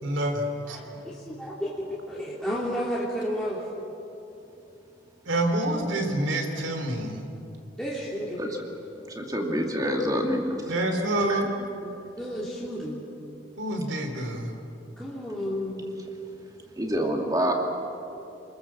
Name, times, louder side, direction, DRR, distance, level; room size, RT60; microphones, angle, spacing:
voice 1, 0.0-0.8 5.3-7.2 10.7-11.5 13.6-14.5, right 1 dB, 85° right, 4 dB, 3.5 m, -27 dB
voice 2, 0.6-3.6 7.8-8.4 11.8-13.0 15.0-15.8, equal, 5° left, -7 dB, 3.1 m, -32 dB
voice 3, 9.1-10.5 11.3-11.4 16.8-17.5, equal, 20° right, 1 dB, 2.4 m, -26 dB
28.5 x 21.0 x 7.5 m, 2.8 s
head